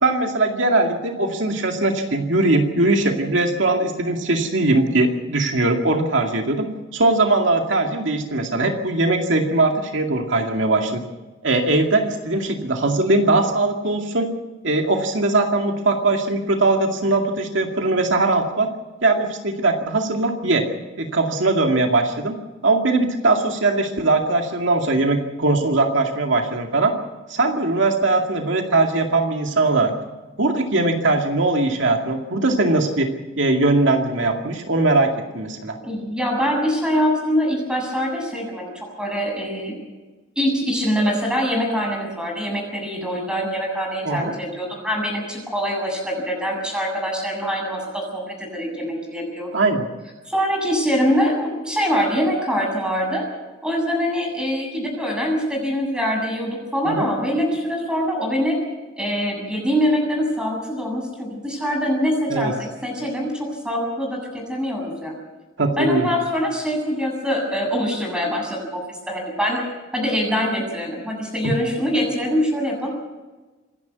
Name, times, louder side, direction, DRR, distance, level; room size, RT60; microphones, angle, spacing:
voice 1, 0.0-6.7 6.9-11.0 11.4-14.3 14.6-18.7 19.0-20.7 21.0-22.4 22.6-26.9 27.3-29.9 30.4-33.1 33.4-35.8 44.1-44.3 49.5-49.8 56.8-57.1 62.3-62.5 65.6-66.1 71.4-71.5, right 2 dB, 70° right, 3 dB, 2.3 m, -20 dB
voice 2, 35.8-39.7 40.4-49.5 50.3-53.2 53.6-58.6 59.0-65.1 65.8-69.6 69.9-72.9, equal, 5° right, 0 dB, 7.5 m, -24 dB
26.5 x 11.0 x 9.4 m, 1.2 s
head